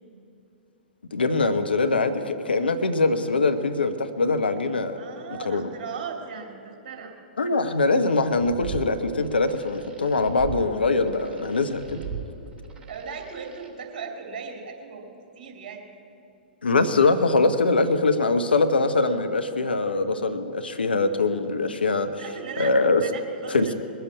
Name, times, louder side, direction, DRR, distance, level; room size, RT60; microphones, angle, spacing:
voice 1, 1.1-5.0 5.4-5.7 7.4-12.0 16.6-22.2 22.6-23.0 23.5-23.7, left 3 dB, 75° left, 8 dB, 1.1 m, -23 dB
voice 2, 5.0-7.1 12.9-15.9 22.2-22.7 23.0-23.7, right 6 dB, 50° right, 2 dB, 2.8 m, -37 dB
sound 1, 8.3-13.7, right 6 dB, 20° right, 2.7 m, -39 dB
21.5 x 7.9 x 8.5 m, 2.8 s
figure-of-eight pair, 110°, 5 cm